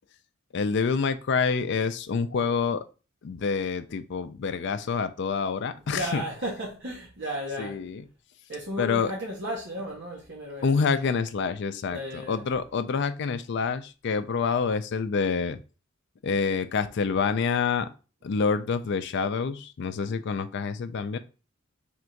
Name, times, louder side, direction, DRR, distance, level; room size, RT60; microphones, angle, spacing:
voice 1, 0.5-2.8 3.2-6.2 7.6-8.0 8.8-9.1 10.6-15.6 16.2-17.9 18.2-21.2, left 5 dB, 60° left, 0.4 m, -27 dB
voice 2, 5.9-7.8 8.5-10.7 11.9-12.5, equal, 60° right, 1.1 m, -34 dB
3.6 x 2.6 x 4.4 m
head